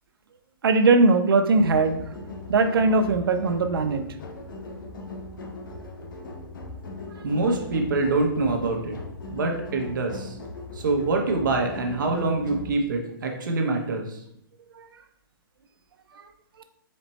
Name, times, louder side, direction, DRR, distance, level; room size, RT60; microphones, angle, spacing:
voice 1, 0.6-2.0 2.5-4.0, right 3 dB, 80° right, 8 dB, 0.5 m, -20 dB
sound 1, 1.5-12.7, left 2 dB, 60° left, 0.8 m, -39 dB
voice 2, 7.2-9.0 9.3-10.4 10.7-14.2, right 3 dB, 60° right, 2 dB, 0.8 m, -25 dB
4.2 x 2.1 x 4.1 m, 0.74 s
hypercardioid pair, 175°, 12 cm